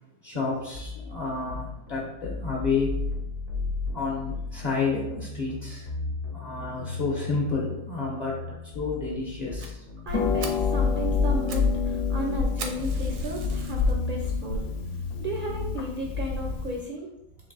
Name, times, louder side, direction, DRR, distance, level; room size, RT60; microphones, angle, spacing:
voice 1, 0.2-3.0 3.9-5.9 6.3-8.4 8.7-9.8, left 4 dB, 40° left, -3 dB, 0.6 m, -30 dB
sound 1, 0.7-16.7, left 3 dB, 65° left, 1.1 m, -35 dB
Fire, 9.6-9.7 10.1-10.2 10.4-10.7 11.2-11.7 12.0-12.1 12.6-13.9 14.5-14.6 15.2-15.3 15.5-15.6 16.0-16.1, right 5 dB, 75° right, 1.0 m, -40 dB
Harp, 10.1-16.8, left 5 dB, 90° left, 1.1 m, -28 dB
voice 2, 10.1-14.6 15.2-17.1, right 1 dB, 55° right, 0 dB, 0.5 m, -34 dB
3.9 x 2.9 x 3.9 m, 0.87 s
omnidirectional pair, 1.5 m